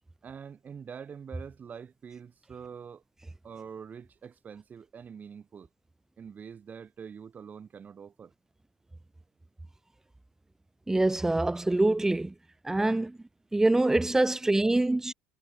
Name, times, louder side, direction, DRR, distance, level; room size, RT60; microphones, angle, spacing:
voice 1, 0.2-3.0 3.4-5.7 6.2-8.3, right 7 dB, 35° right, 8.0 m, -45 dB
voice 2, 10.9-12.3 12.6-13.2 13.5-15.1, right 2 dB, 10° right, 0.7 m, -25 dB
hypercardioid pair, 65°, 5 cm